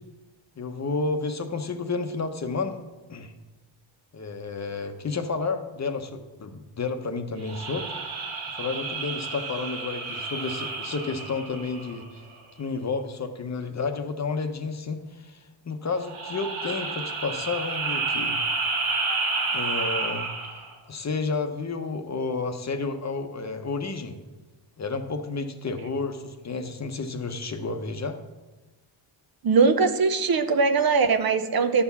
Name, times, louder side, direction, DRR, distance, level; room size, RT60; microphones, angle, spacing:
voice 1, 0.6-2.8 3.1-3.3 4.1-7.9 8.5-12.2 12.6-18.4 19.5-20.3 20.9-24.2 24.8-28.2, left 4 dB, 35° left, 7 dB, 0.8 m, -31 dB
sound 1, 7.4-12.2 16.0-20.7, right 4 dB, 85° right, 1.7 m, -30 dB
voice 2, 29.4-31.8, right 4 dB, 50° right, 9 dB, 0.7 m, -21 dB
10.5 x 4.5 x 6.9 m, 1.1 s
wide cardioid pair, 130°, 48 cm